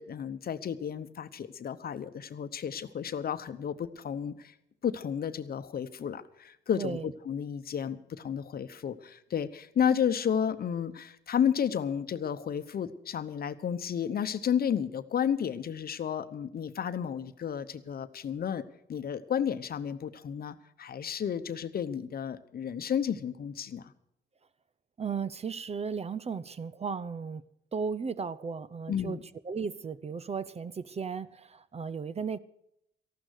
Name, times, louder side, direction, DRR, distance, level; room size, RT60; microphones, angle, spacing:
voice 1, 0.0-4.5 4.8-7.0 7.2-18.6 18.9-23.9 28.9-29.2, left 8 dB, 50° left, 0.9 m, -32 dB
voice 2, 25.0-27.4 27.7-29.2 29.4-32.4, right 5 dB, 30° right, 0.6 m, -35 dB
14.0 x 12.0 x 6.5 m
cardioid pair, 90°, 20 cm